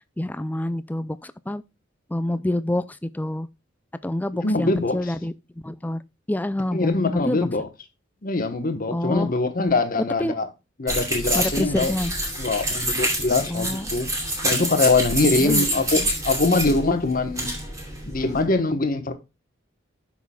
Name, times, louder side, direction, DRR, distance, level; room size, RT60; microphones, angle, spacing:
voice 1, 0.2-1.6 2.1-3.5 4.0-5.3 5.6-6.0 6.3-7.5 8.9-9.3 10.2-10.3 11.3-12.1 13.5-13.9 15.4-16.1, left 1 dB, 10° left, 0.4 m, -27 dB
voice 2, 4.4-5.1 6.7-7.7 8.2-10.5 10.8-11.9 12.4-14.1 14.4-17.5 18.1-19.1, left 3 dB, 45° left, 1.2 m, -23 dB
sound 1, 10.9-18.4, right 1 dB, 15° right, 2.8 m, -27 dB
13.0 x 6.0 x 2.3 m
head